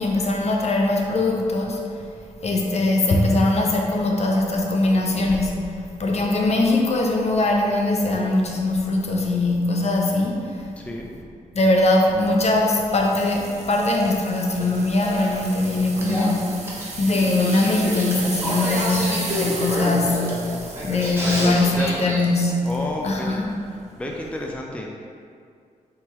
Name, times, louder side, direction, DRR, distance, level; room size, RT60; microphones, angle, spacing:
voice 1, 0.0-1.8 2.4-5.7 6.0-10.5 11.5-16.6 17.0-20.3 20.8-22.5 23.0-23.5, left 2 dB, 50° left, 0 dB, 0.6 m, -21 dB
voice 2, 10.8-11.1 15.7-15.8 21.4-22.2 22.6-23.4 24.0-25.1, left 1 dB, 10° left, 0 dB, 0.5 m, -31 dB
sound 1, 12.9-22.8 23.3-23.6 24.1-24.2, right 3 dB, 50° right, 0.7 m, -36 dB
Male speech man speaking / Female speech woman speaking / Conversation, 14.5-22.2, equal, 20° right, 1.2 m, -29 dB
4.1 x 3.8 x 2.9 m, 2.3 s
cardioid pair, 65°, 14 cm